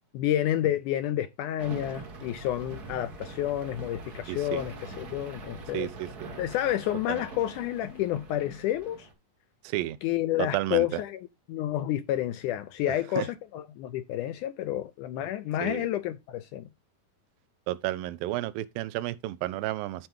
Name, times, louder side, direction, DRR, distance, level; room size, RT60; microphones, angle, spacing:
voice 1, 0.1-5.9 6.4-9.1 10.0-16.7, left 12 dB, 80° left, 1.9 m, -30 dB
sound 1, 1.6-9.1, right 2 dB, 70° right, 0.9 m, -43 dB
voice 2, 4.3-4.6 5.7-6.3 7.1-7.2 9.6-10.0 10.4-10.9 13.2-13.3 15.6-15.9 17.7-20.1, right 16 dB, 90° right, 2.4 m, -32 dB
11.5 x 4.5 x 3.5 m
omnidirectional pair, 4.0 m